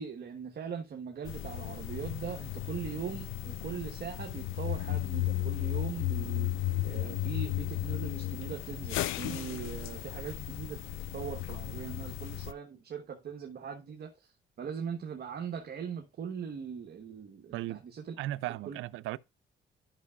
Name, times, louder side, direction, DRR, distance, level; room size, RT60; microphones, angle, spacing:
voice 1, 0.0-18.1 18.7-18.8, right 7 dB, 55° right, 1.2 m, -40 dB
sound 1, 1.3-12.5, left 15 dB, 85° left, 0.5 m, -35 dB
voice 2, 18.2-19.2, right 15 dB, 90° right, 0.4 m, -36 dB
11.5 x 5.8 x 2.3 m
cardioid pair, 90°, 20 cm